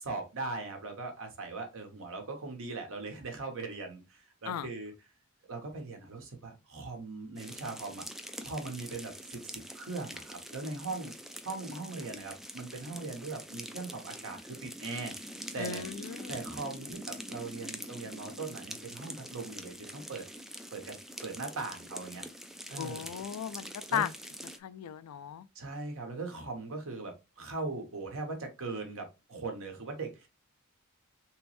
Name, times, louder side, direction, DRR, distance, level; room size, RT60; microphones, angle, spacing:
voice 1, 0.0-4.9 5.5-8.0 8.4-11.1 11.4-15.1 15.5-15.8 16.3-20.2 20.7-21.0 21.2-22.3 22.7-23.1 23.9-24.0 25.5-30.3, right 3 dB, 65° right, 1.1 m, -40 dB
sound 1, 7.4-24.6, equal, ahead, 0.3 m, -45 dB
voice 2, 15.6-16.4 22.8-24.1 24.4-25.5, left 9 dB, 80° left, 0.3 m, -36 dB
3.3 x 3.0 x 3.1 m
head